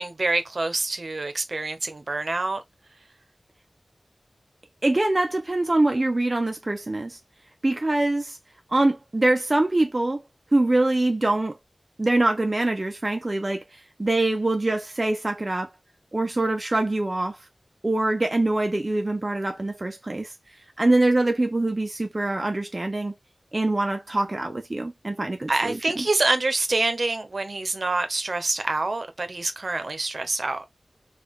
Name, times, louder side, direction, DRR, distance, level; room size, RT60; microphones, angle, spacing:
voice 1, 0.0-2.6 25.5-30.6, right 2 dB, 65° right, 0.8 m, -26 dB
voice 2, 4.8-7.2 7.6-8.4 8.7-10.2 10.5-11.6 12.0-15.7 16.1-17.4 17.8-20.3 20.8-23.1 23.5-26.1, right 2 dB, 40° right, 0.5 m, -24 dB
3.3 x 2.4 x 3.5 m
wide cardioid pair, 50°, 0 cm